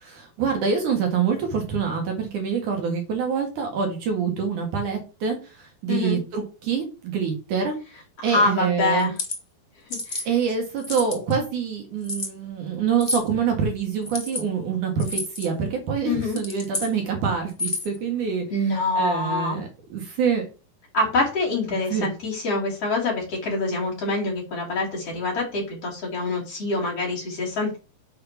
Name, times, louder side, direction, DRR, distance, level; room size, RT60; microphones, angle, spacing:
voice 1, 0.0-7.8 8.2-9.1 10.3-18.4 19.0-20.5 21.9-22.1, right 6 dB, 60° right, 3 dB, 2.8 m, -26 dB
voice 2, 5.9-6.2 8.2-9.1 10.1-10.3 16.0-16.4 18.5-19.6 20.9-27.8, left 2 dB, 40° left, -3 dB, 3.3 m, -25 dB
sound 1, 9.0-9.4 9.9-10.3 10.8-11.3 12.0-12.3 13.0-13.3 14.0-14.4 15.0-15.5 16.2-16.9 17.5-18.0, left 2 dB, 80° left, 0.5 m, -30 dB
7.0 x 4.8 x 5.8 m, 0.31 s
omnidirectional pair, 4.4 m